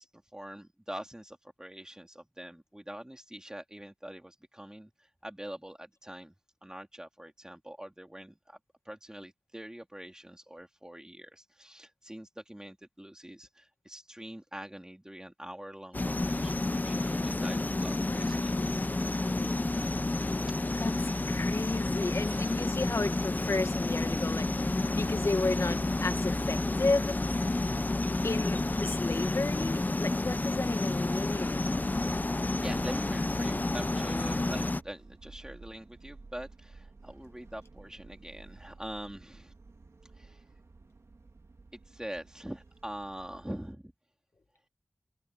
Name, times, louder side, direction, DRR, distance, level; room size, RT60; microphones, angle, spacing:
voice 1, 0.0-6.3 6.6-8.6 8.8-18.6 20.8-21.6 22.2-22.6 32.3-39.5 40.0-40.4 41.8-43.9, right 1 dB, 15° right, 2.7 m, -44 dB
sound 1, 15.9-34.8, left 2 dB, 40° left, 0.7 m, -30 dB
voice 2, 20.7-27.2 28.2-31.6, left 3 dB, 70° left, 1.9 m, -33 dB
sound 2, 23.8-43.7, right 3 dB, 80° right, 2.9 m, -53 dB
cardioid pair, 40°, 5 cm